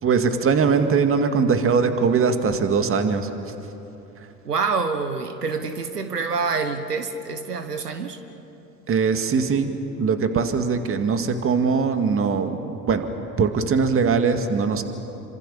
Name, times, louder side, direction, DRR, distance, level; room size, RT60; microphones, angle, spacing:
voice 1, 0.0-3.5 8.9-13.1 13.4-14.8, right 5 dB, 30° right, 7 dB, 2.2 m, -21 dB
voice 2, 4.4-8.2, right 4 dB, 85° right, 8 dB, 1.4 m, -26 dB
28.5 x 26.0 x 7.2 m, 3.0 s
figure-of-eight pair, 75°, 45 cm